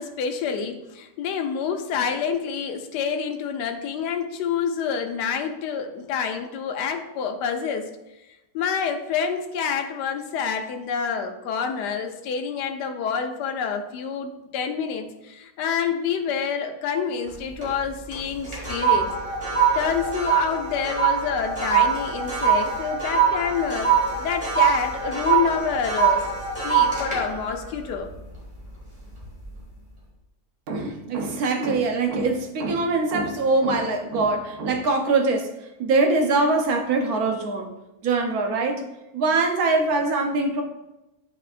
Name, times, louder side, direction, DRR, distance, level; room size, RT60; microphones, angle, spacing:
voice 1, 0.0-7.9 8.5-19.1 19.7-26.2 26.6-28.1, left 6 dB, 85° left, 4 dB, 1.2 m, -27 dB
sound 1, 17.3-17.8 18.1-28.7 29.1-29.4, right 7 dB, 20° right, 1.9 m, -23 dB
voice 2, 30.7-35.5 35.8-37.7 38.0-38.8 39.1-40.6, right 3 dB, 65° right, 4 dB, 1.2 m, -23 dB
8.8 x 4.5 x 2.5 m, 0.97 s
omnidirectional pair, 1.8 m